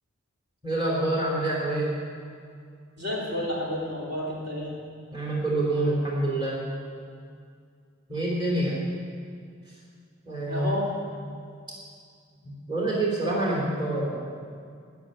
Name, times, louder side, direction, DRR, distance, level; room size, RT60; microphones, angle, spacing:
voice 1, 0.6-2.0 5.1-6.6 8.1-8.8 10.2-10.7 12.4-14.2, right 2 dB, 25° right, -4 dB, 3.0 m, -27 dB
voice 2, 3.0-4.7 10.5-10.9, left 1 dB, 50° right, -5 dB, 3.2 m, -30 dB
16.0 x 6.9 x 9.0 m, 2.2 s
head